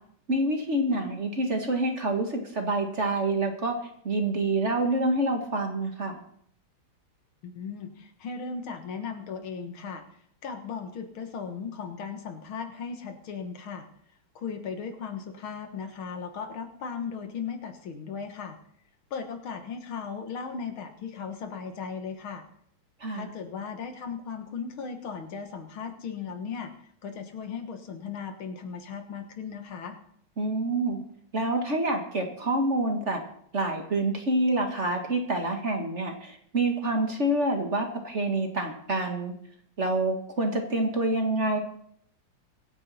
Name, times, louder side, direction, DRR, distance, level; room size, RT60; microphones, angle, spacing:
voice 1, 0.3-3.8 4.0-6.2 23.0-23.3 30.4-31.0 31.3-33.2 33.5-39.3 39.8-41.6, right 2 dB, 35° right, 4 dB, 1.8 m, -27 dB
voice 2, 7.4-10.0 10.4-13.9 14.4-18.6 19.1-22.4 23.1-30.0, left 6 dB, 75° left, 6 dB, 2.3 m, -37 dB
24.0 x 9.4 x 4.2 m, 0.66 s
omnidirectional pair, 2.3 m